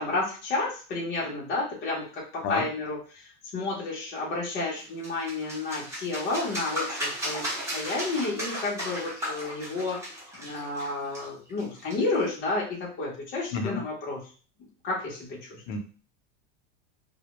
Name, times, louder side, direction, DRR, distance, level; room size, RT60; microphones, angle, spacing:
voice 1, 0.0-2.2 2.5-7.4 7.7-10.1 10.4-14.2 14.8-15.6, left 3 dB, 30° left, -4 dB, 0.6 m, -31 dB
voice 2, 2.4-2.6 13.5-13.8 15.7-15.8, left 4 dB, 75° left, 5 dB, 0.7 m, -29 dB
sound 1, 4.8-12.3, equal, 10° right, 0.8 m, -35 dB
2.1 x 2.0 x 2.9 m, 0.38 s
supercardioid pair, 150°, 35 cm